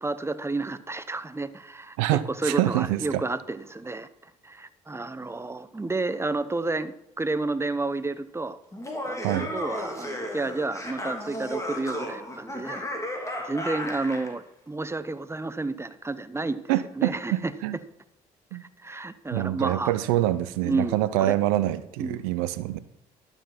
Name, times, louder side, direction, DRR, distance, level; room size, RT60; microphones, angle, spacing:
voice 1, 0.0-8.6 9.0-12.9 13.4-16.6 17.0-17.5 18.5-19.9 20.6-21.4 22.0-22.3, right 3 dB, 15° right, 13 dB, 0.9 m, -31 dB
voice 2, 2.0-3.2 9.2-9.5 16.7-17.8 18.5-18.7 19.3-22.8, right 14 dB, 90° right, 15 dB, 0.6 m, -26 dB
Laughter, 8.7-14.3, left 1 dB, 15° left, 3.1 m, -34 dB
11.5 x 7.1 x 5.8 m, 0.85 s
supercardioid pair, 60°, 18 cm